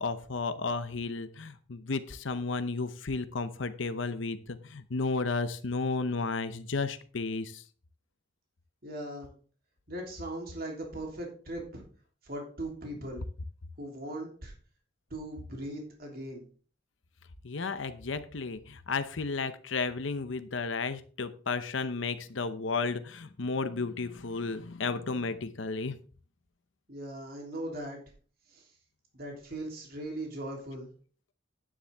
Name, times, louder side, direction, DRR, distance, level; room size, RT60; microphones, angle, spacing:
voice 1, 0.0-7.6 17.4-26.0, left 4 dB, 70° left, 11 dB, 0.8 m, -33 dB
voice 2, 8.8-9.3 9.9-11.8 12.2-13.2 13.8-14.5 15.1-16.4 26.9-28.0 28.5-28.7 29.1-30.9, right 1 dB, 50° right, 0 dB, 3.2 m, -39 dB
10.0 x 9.9 x 3.5 m, 0.41 s
head